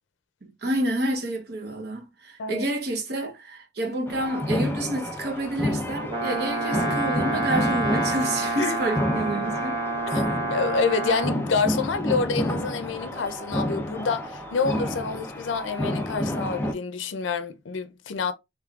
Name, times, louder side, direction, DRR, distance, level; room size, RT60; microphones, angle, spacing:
voice 1, 0.4-9.8, right 1 dB, 55° right, 0.8 m, -29 dB
sound 1, 4.1-16.7, left 1 dB, 10° left, 0.4 m, -30 dB
Brass instrument, 6.1-11.4, right 2 dB, 25° right, 0.8 m, -28 dB
voice 2, 10.5-18.3, left 5 dB, 80° left, 0.5 m, -27 dB
3.6 x 3.1 x 2.3 m
head